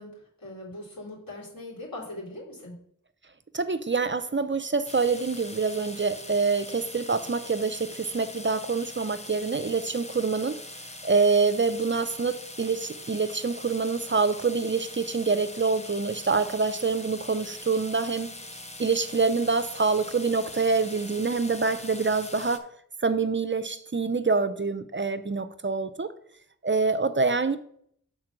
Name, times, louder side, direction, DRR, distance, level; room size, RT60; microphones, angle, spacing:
voice 1, 0.0-2.8, left 1 dB, 85° left, -6 dB, 3.5 m, -41 dB
voice 2, 3.5-18.3 18.8-22.7 23.0-26.1 26.6-27.6, right 4 dB, 35° right, 12 dB, 0.5 m, -26 dB
sound 1, 4.8-22.6, left 2 dB, 20° left, 0.7 m, -42 dB
6.3 x 4.4 x 5.9 m, 0.66 s
wide cardioid pair, 65°, 34 cm